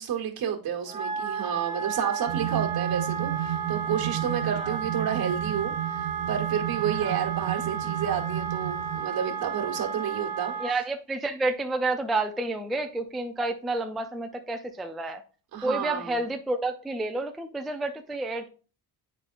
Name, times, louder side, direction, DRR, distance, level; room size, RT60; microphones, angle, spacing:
voice 1, 0.0-10.5 15.5-16.3, right 8 dB, 70° right, 2 dB, 1.4 m, -30 dB
Wind instrument woodwind instrument, 0.8-10.7, right 7 dB, 20° right, 1.1 m, -33 dB
sound 1, 2.3-9.0, right 13 dB, 85° right, 0.6 m, -33 dB
voice 2, 4.4-4.8 7.0-7.2 10.6-15.2 15.6-18.5, right 2 dB, ahead, 5 dB, 0.3 m, -30 dB
8.8 x 4.9 x 2.5 m, 0.37 s
cardioid pair, 145°, 38 cm